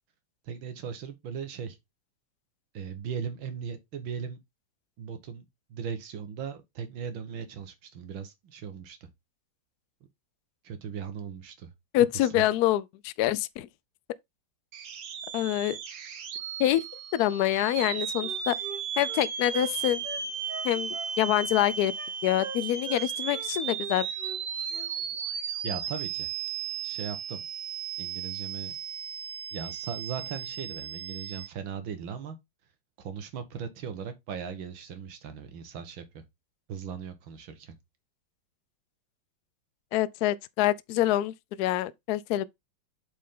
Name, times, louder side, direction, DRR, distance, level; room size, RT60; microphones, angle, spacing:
voice 1, 0.5-1.8 2.7-4.4 5.0-9.1 10.6-11.7 12.1-12.4 25.6-26.3 26.8-27.4 28.0-28.8 29.5-32.4 33.0-36.2 36.7-37.7, right 7 dB, 90° right, 2.1 m, -38 dB
voice 2, 11.9-13.7 15.3-15.8 16.6-16.8 17.1-18.5 19.0-20.0 20.6-21.9 22.2-24.1 39.9-42.5, left 14 dB, 75° left, 0.9 m, -26 dB
sound 1, 14.7-31.5, right 7 dB, 65° right, 1.7 m, -35 dB
Wind instrument woodwind instrument, 17.8-19.7 20.0-21.1 21.5-22.1 22.4-23.0 23.3-23.5 23.8-24.4 24.7-24.9, right 5 dB, 25° right, 1.4 m, -42 dB
8.3 x 4.4 x 3.7 m
omnidirectional pair, 2.1 m